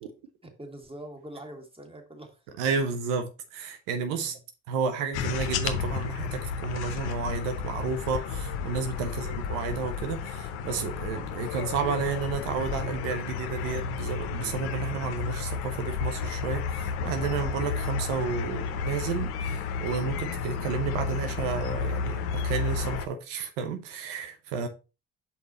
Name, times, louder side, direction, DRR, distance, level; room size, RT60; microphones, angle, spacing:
voice 1, 0.4-2.5 4.2-4.4 9.0-9.3, right 1 dB, 15° right, 2.0 m, -45 dB
voice 2, 2.6-4.4 4.7-24.7, right 5 dB, 90° right, 0.8 m, -31 dB
sound 1, 5.1-23.1, left 5 dB, 80° left, 0.8 m, -32 dB
5.6 x 4.7 x 4.0 m
hypercardioid pair, 55°, 37 cm